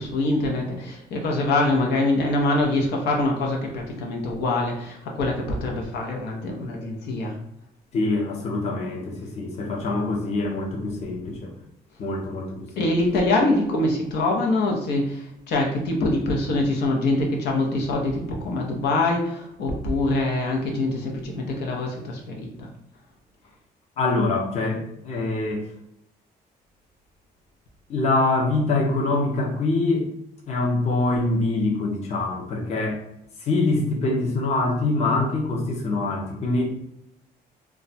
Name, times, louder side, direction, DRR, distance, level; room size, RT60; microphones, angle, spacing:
voice 1, 0.0-7.4 12.8-22.7, left 2 dB, 85° left, 0 dB, 0.8 m, -24 dB
voice 2, 7.9-11.5 12.0-12.9 24.0-25.6 27.9-30.1 30.5-33.0 33.4-36.7, left 2 dB, 40° left, -1 dB, 0.6 m, -24 dB
2.3 x 2.2 x 3.9 m, 0.79 s
cardioid pair, 155°, 17 cm